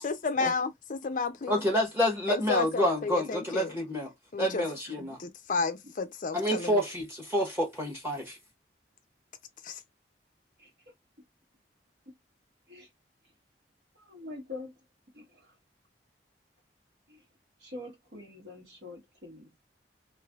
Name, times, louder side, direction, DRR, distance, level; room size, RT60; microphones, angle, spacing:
voice 1, 0.0-1.6 2.3-3.7 4.3-4.6 5.0-6.8 9.6-9.8, left 4 dB, 45° left, 0.5 m, -32 dB
voice 2, 1.5-4.1 4.4-5.2 6.3-8.4, equal, 15° right, 1.1 m, -28 dB
voice 3, 10.6-10.9 12.0-12.1 12.7-12.9 14.1-14.8 15.1-15.5 17.1-17.2 17.6-19.6, left 2 dB, 65° right, 1.6 m, -45 dB
3.2 x 2.6 x 2.4 m
head